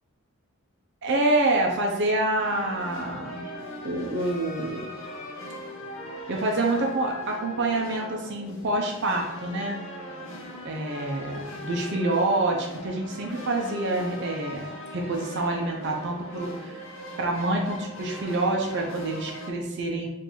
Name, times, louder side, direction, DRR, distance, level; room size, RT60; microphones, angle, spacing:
voice 1, 1.0-3.5 3.8-4.9 6.3-9.8 10.6-16.9 17.2-20.1, right 2 dB, 55° right, 0 dB, 0.5 m, -27 dB
sound 1, 2.4-19.5, left 1 dB, 65° left, 0.7 m, -40 dB
3.8 x 2.5 x 2.9 m, 0.92 s
head